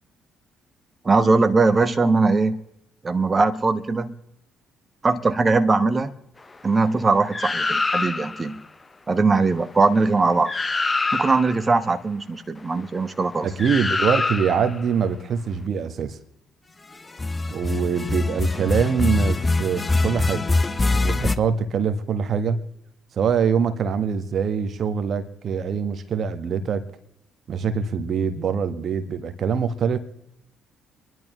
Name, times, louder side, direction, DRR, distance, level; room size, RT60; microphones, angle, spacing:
voice 1, 1.0-2.6 3.0-4.2 5.0-6.1 6.6-8.6 9.1-10.5 11.1-13.5, right 3 dB, 30° right, 11 dB, 1.1 m, -20 dB
sound 1, 7.3-8.5 10.1-10.2 10.5-11.6 13.6-14.8 17.1-21.4, left 3 dB, 25° left, 0.7 m, -24 dB
voice 2, 13.4-16.2 17.5-20.5 21.0-22.6 23.1-26.9 27.5-30.0, right 6 dB, 50° right, 10 dB, 1.3 m, -24 dB
26.5 x 11.0 x 3.1 m, 0.82 s
hypercardioid pair, 45°, 0 cm